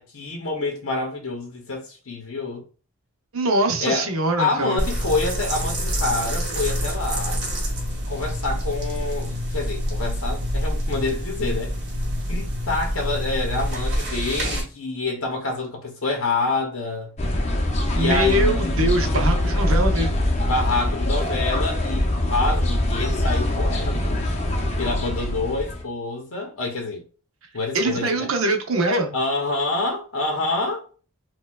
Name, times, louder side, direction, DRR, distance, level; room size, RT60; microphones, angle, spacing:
voice 1, 0.0-2.6 3.8-4.1 4.4-7.4 8.1-11.7 12.3-17.1 17.9-18.9 20.5-24.3 24.8-27.0 27.5-28.3 29.1-30.9, left 3 dB, 75° left, 0.7 m, -27 dB
voice 2, 3.3-4.8 17.9-20.2 27.7-29.1, right 2 dB, 70° right, 0.6 m, -23 dB
sound 1, 4.8-14.6, equal, 50° right, 1.5 m, -26 dB
sound 2, 17.2-25.8, left 1 dB, 30° left, 0.5 m, -23 dB
4.3 x 2.2 x 2.2 m
head